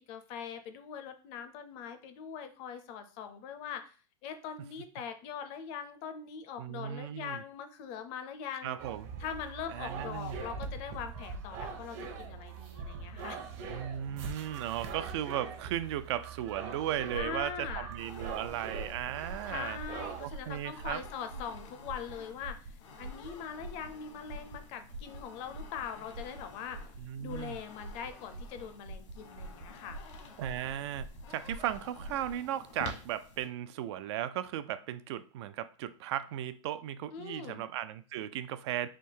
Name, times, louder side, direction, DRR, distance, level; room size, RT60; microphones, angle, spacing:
voice 1, 0.0-3.9 4.2-8.8 9.2-13.5 17.1-17.9 19.5-26.9 27.2-30.0 37.1-37.6, left 7 dB, 40° left, 9 dB, 0.5 m, -42 dB
voice 2, 6.6-7.4 8.6-9.1 9.7-10.4 13.7-19.8 20.2-21.0 27.0-27.6 30.4-38.9, right 11 dB, 60° right, 13 dB, 0.4 m, -36 dB
sound 1, 8.8-20.3, right 5 dB, 45° right, 0.8 m, -43 dB
sound 2, 17.1-32.4, right 2 dB, 90° right, 1.1 m, -45 dB
sound 3, 18.0-33.5, left 4 dB, 80° left, 1.2 m, -51 dB
3.5 x 2.7 x 4.5 m, 0.38 s
supercardioid pair, 155°, 16 cm